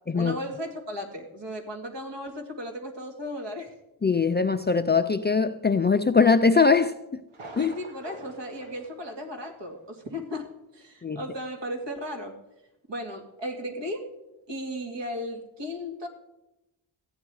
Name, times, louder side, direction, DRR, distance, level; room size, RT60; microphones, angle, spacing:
voice 1, 0.1-3.7 7.6-10.5 10.7-12.3 12.9-14.0 14.5-16.1, left 1 dB, 60° right, 2.4 m, -35 dB
voice 2, 4.0-6.9 7.6-7.7 11.0-11.2, left 5 dB, 25° left, 0.4 m, -21 dB
Thunder, 7.3-9.9 10.2-10.3 10.8-10.9, right 2 dB, 90° right, 1.7 m, -46 dB
14.5 x 9.0 x 4.8 m
wide cardioid pair, 90°, 48 cm